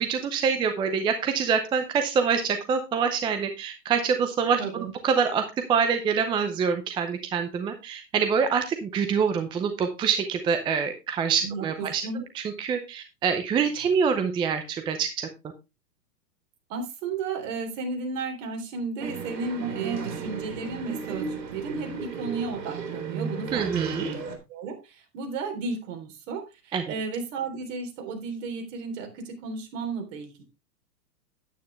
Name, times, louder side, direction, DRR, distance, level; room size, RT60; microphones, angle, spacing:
voice 1, 0.0-5.4 5.7-12.0 12.3-15.3 23.5-24.0 26.7-26.8, right 6 dB, 10° right, 6 dB, 0.6 m, -25 dB
voice 2, 4.6-4.9 11.4-12.2 16.7-23.7 24.0-24.2 24.5-30.4, right 4 dB, 50° right, 4 dB, 3.5 m, -34 dB
sound 1, 19.0-24.4, right 5 dB, 80° right, 3.3 m, -33 dB
9.5 x 9.3 x 3.2 m, 0.25 s
hypercardioid pair, 130°, 49 cm